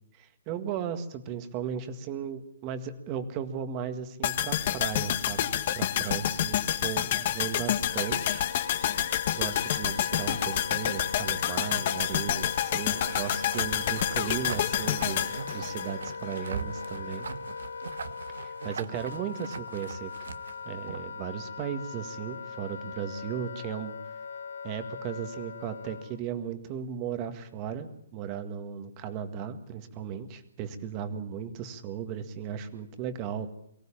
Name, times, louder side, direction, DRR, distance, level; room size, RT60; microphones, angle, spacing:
voice 1, 0.2-8.4 9.3-17.3 18.4-20.2 20.6-23.9 24.6-33.5, right 8 dB, 25° right, 9 dB, 1.8 m, -36 dB
sound 1, 4.2-16.4 16.7-16.8, left 11 dB, 40° left, 1.6 m, -28 dB
Wind instrument woodwind instrument, 7.4-26.2, left 5 dB, 80° left, 0.8 m, -40 dB
sound 2, 12.9-21.2, right 6 dB, 75° right, 1.3 m, -41 dB
23.5 x 15.5 x 8.8 m, 0.73 s
hypercardioid pair, 165°, 0 cm